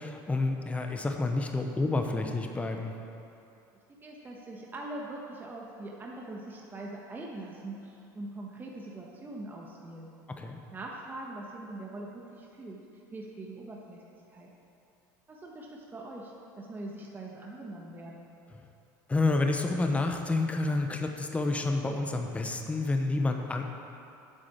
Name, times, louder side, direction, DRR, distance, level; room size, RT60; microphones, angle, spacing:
voice 1, 0.0-2.9 10.4-10.6 19.1-23.6, left 2 dB, 15° left, 4 dB, 0.9 m, -29 dB
voice 2, 4.0-10.1 10.7-12.8 13.1-14.0 14.3-14.5 15.3-18.3, right 2 dB, 20° right, -2 dB, 1.3 m, -42 dB
8.6 x 6.1 x 8.3 m, 2.7 s
supercardioid pair, 110°, 9 cm